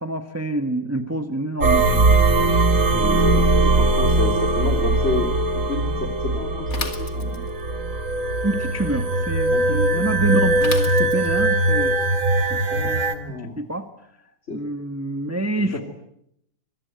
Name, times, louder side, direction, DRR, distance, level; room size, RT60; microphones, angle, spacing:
voice 1, 0.0-2.8 8.4-12.0 12.5-12.6 13.6-13.8 14.5-15.8, right 1 dB, 10° right, 8 dB, 1.3 m, -27 dB
sound 1, 1.6-13.1, right 2 dB, 50° right, 2.4 m, -20 dB
voice 2, 2.9-7.4 9.5-10.1 12.7-13.6 14.5-14.6 15.6-15.8, left 2 dB, 40° left, 2 dB, 3.5 m, -30 dB
Bicycle / Mechanisms, 6.7-7.7 10.6-11.5, left 4 dB, 55° left, 2.7 m, -33 dB
27.0 x 22.0 x 9.5 m, 0.78 s
omnidirectional pair, 1.7 m